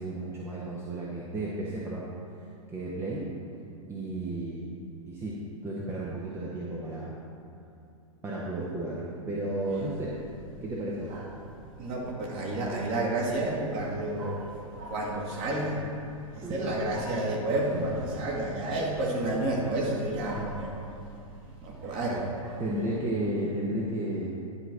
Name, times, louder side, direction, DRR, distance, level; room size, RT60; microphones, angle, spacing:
voice 1, 0.0-2.1 2.7-3.3 3.9-4.7 5.1-7.1 8.2-10.2 10.6-11.2 16.3-16.9 17.3-17.8 22.6-24.3, right 1 dB, 15° right, -5 dB, 1.1 m, -33 dB
voice 2, 11.8-15.8 16.5-20.8 21.6-22.6, right 2 dB, 30° right, -2 dB, 1.9 m, -30 dB
10.5 x 4.6 x 6.1 m, 2.6 s
figure-of-eight pair, 105°, 18 cm